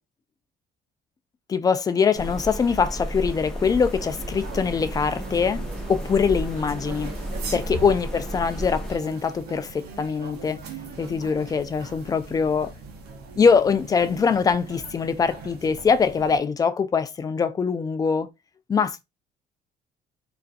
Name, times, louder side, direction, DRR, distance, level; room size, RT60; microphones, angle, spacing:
voice 1, 1.5-5.6 5.9-7.1 7.5-10.6 11.0-12.7 13.4-18.3 18.7-19.0, left 5 dB, 20° left, 0.3 m, -23 dB
sound 1, 2.1-9.0, right 1 dB, 5° left, 0.8 m, -33 dB
sound 2, 3.6-16.4, right 4 dB, 75° right, 0.7 m, -40 dB
2.4 x 2.4 x 2.3 m
cardioid pair, 110°, 17 cm